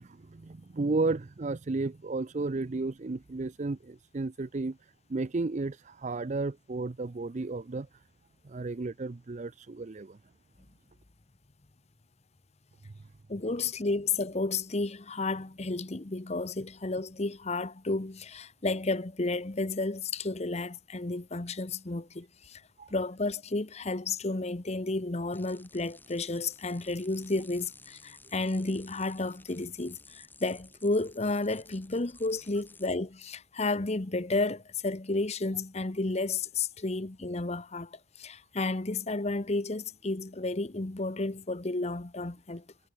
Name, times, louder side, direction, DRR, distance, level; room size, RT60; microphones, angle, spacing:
voice 1, 0.0-4.8 5.1-7.9 8.4-10.2 22.8-22.9, right 3 dB, 35° right, 0.5 m, -33 dB
voice 2, 13.3-22.6 22.9-42.6, left 3 dB, 35° left, 0.9 m, -32 dB
sound 1, 25.3-32.9, left 3 dB, 10° left, 4.7 m, -55 dB
head